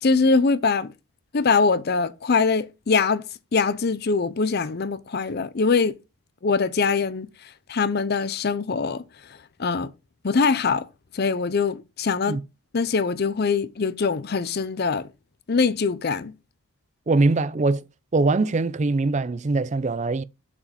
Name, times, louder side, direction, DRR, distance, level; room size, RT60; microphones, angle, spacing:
voice 1, 0.0-0.9 1.3-5.9 6.4-7.3 7.7-9.0 9.6-9.9 10.2-10.9 11.1-12.4 12.7-15.1 15.5-16.3, left 4 dB, 45° left, 0.5 m, -23 dB
voice 2, 17.1-17.8 18.1-20.2, right 3 dB, 30° right, 0.4 m, -22 dB
7.1 x 4.9 x 5.1 m
head